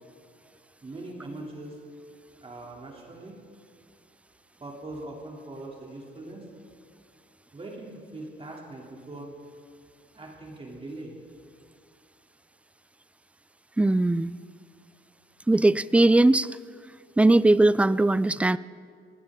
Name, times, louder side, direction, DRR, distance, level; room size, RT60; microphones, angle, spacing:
voice 1, 0.8-1.8 2.4-3.4 4.6-6.5 7.5-9.3 10.1-11.2, right 2 dB, 30° right, -1 dB, 3.0 m, -41 dB
voice 2, 13.8-14.3 15.5-16.6 17.2-18.6, right 2 dB, 5° right, 18 dB, 0.3 m, -20 dB
20.0 x 17.0 x 3.7 m, 2.2 s
cardioid pair, 90°, 20 cm